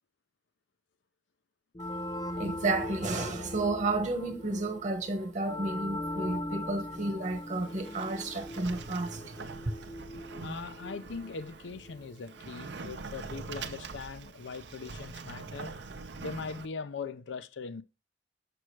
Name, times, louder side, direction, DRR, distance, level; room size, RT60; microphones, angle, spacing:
sound 1, 1.7-12.2, left 1 dB, 20° left, 0.5 m, -40 dB
voice 1, 2.3-9.3, right 2 dB, 40° right, 1.2 m, -32 dB
Sliding door, 7.2-16.7, right 4 dB, 65° right, 0.7 m, -44 dB
voice 2, 10.4-15.7 16.2-17.8, left 4 dB, 80° left, 0.5 m, -40 dB
6.2 x 6.0 x 3.2 m
head